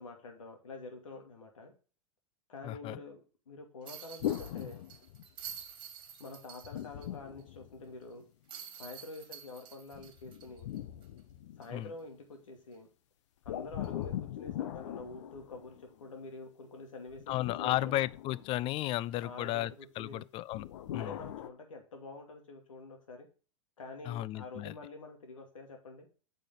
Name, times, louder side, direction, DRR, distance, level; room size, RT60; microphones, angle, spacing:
voice 1, 0.0-1.7 2.5-3.2 3.5-4.8 6.2-8.2 8.8-10.7 11.6-12.9 13.4-18.0 19.2-20.2 21.0-23.3 23.8-26.1, left 3 dB, 80° left, 2.5 m, -47 dB
voice 2, 2.6-3.0 11.7-11.9 17.3-20.6 20.9-21.1 24.1-24.7, left 15 dB, 35° left, 0.4 m, -34 dB
sound 1, 3.8-7.1 7.4-7.5 8.5-11.2 11.6-11.7 13.8-14.0, right 8 dB, 30° right, 2.4 m, -49 dB
sound 2, 4.2-5.6 6.6-8.2 9.9-11.9 13.4-16.0 17.1-19.0 20.5-21.5, left 12 dB, 65° left, 0.8 m, -41 dB
9.0 x 5.5 x 3.7 m
hypercardioid pair, 100°, 17 cm